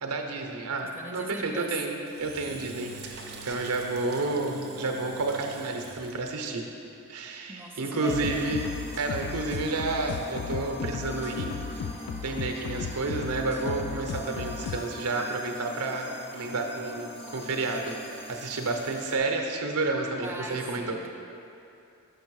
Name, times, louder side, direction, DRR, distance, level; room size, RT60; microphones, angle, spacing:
voice 1, 0.0-6.7 7.1-8.7 9.0-11.9 12.2-21.0, right 3 dB, 85° right, 3 dB, 0.7 m, -30 dB
voice 2, 0.9-1.7 7.5-8.4 20.2-21.1, right 1 dB, 10° right, 0 dB, 0.5 m, -39 dB
Engine / Drill, 2.1-6.6, right 4 dB, 45° right, 0.7 m, -44 dB
sound 1, 8.0-19.2, equal, 30° left, 0.9 m, -42 dB
sound 2, 8.1-14.8, left 7 dB, 85° left, 0.3 m, -36 dB
6.6 x 5.3 x 4.7 m, 2.7 s
head